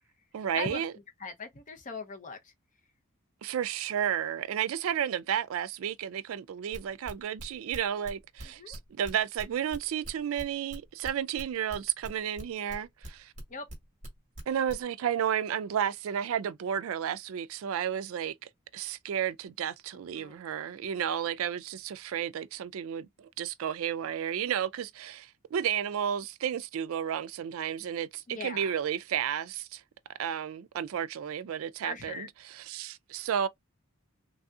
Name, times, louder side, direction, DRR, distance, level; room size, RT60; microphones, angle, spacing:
voice 1, 0.3-0.9 3.4-13.3 14.5-18.3 18.7-29.8 30.2-33.5, right 9 dB, 70° right, 0.3 m, -32 dB
voice 2, 1.2-2.5 8.4-8.8 13.5-13.7 20.1-20.4 28.3-28.7 31.8-32.3, left 4 dB, 35° left, 0.7 m, -40 dB
sound 1, 6.7-12.4 12.7-14.1 14.3-14.7, right 1 dB, 35° right, 1.3 m, -42 dB
3.3 x 2.7 x 2.3 m
head